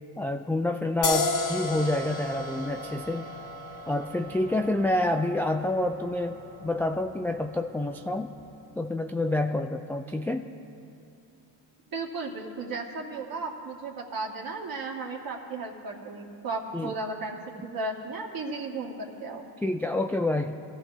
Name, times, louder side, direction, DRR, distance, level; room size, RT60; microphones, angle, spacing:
voice 1, 0.2-3.3 3.9-8.3 8.7-10.5 16.7-16.9 19.6-20.6, left 1 dB, 5° left, 4 dB, 0.3 m, -28 dB
sound 1, 1.0-8.3, left 3 dB, 50° left, 1.7 m, -35 dB
voice 2, 11.9-19.4, right 3 dB, 45° right, -2 dB, 2.4 m, -35 dB
22.5 x 14.5 x 2.8 m, 2.6 s
supercardioid pair, 85°, 48 cm